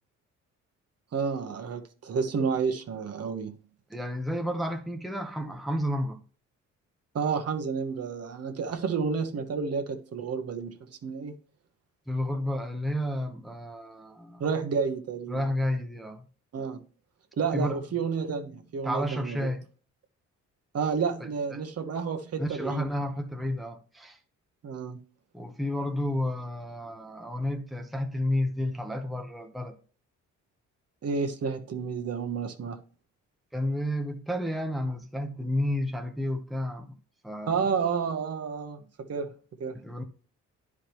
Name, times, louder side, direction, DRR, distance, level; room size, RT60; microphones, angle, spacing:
voice 1, 1.1-3.5 7.1-10.8 11.0-11.4 14.4-15.4 16.5-16.8 17.4-19.5 20.7-22.9 24.6-25.0 31.0-32.8 37.5-39.3 39.6-39.8, right 5 dB, 55° right, 1.2 m, -30 dB
voice 2, 3.9-6.2 12.1-14.4 15.3-16.3 17.5-17.8 18.8-19.6 21.2-21.6 22.4-24.2 25.3-29.8 33.5-37.0 37.2-37.7 39.8-40.0, left 1 dB, ahead, 0.9 m, -31 dB
10.0 x 4.9 x 3.0 m
cardioid pair, 90°, 30 cm